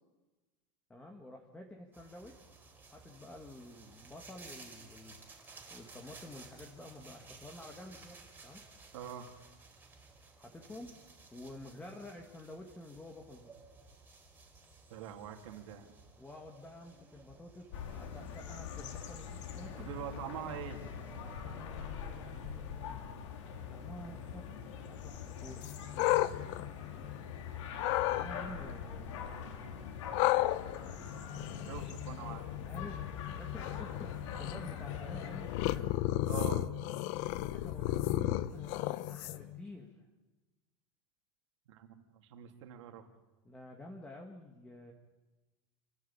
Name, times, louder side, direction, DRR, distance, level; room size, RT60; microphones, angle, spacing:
voice 1, 0.9-2.5 2.9-5.2 5.7-8.2 8.4-8.6 10.4-11.0 11.3-13.5 16.2-19.9 21.4-23.1 23.7-26.4 28.0-29.2 31.5-32.0 32.6-35.6 37.5-40.0 43.4-44.9, left 1 dB, 10° left, 2 dB, 2.2 m, -50 dB
sound 1, 1.9-21.4, right 3 dB, 15° right, 4.1 m, -56 dB
voice 2, 8.9-9.3 14.9-16.0 19.8-20.8 31.7-32.4 36.3-36.6 41.7-43.0, right 10 dB, 80° right, 4 dB, 3.4 m, -44 dB
sound 2, 17.7-35.8, left 7 dB, 85° left, 4.3 m, -43 dB
sound 3, 25.6-27.3 27.8-28.3 30.1-39.6, left 15 dB, 50° left, 1.0 m, -34 dB
28.0 x 15.5 x 8.7 m, 1.2 s
supercardioid pair, 155°, 15 cm